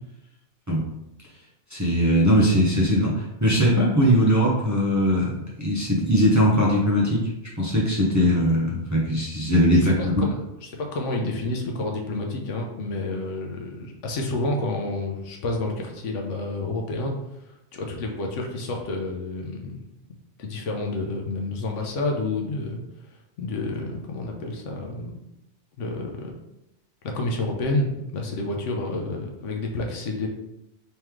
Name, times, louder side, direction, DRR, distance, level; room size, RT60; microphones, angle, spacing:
voice 1, 1.7-5.3 5.6-7.2 7.6-9.9, equal, 20° right, -5 dB, 0.6 m, -20 dB
voice 2, 9.7-17.1 17.7-19.8 20.4-22.8 23.4-25.2 25.8-26.3 27.0-30.3, left 2 dB, 85° left, 1 dB, 1.1 m, -29 dB
3.3 x 3.1 x 3.5 m, 0.89 s
omnidirectional pair, 1.2 m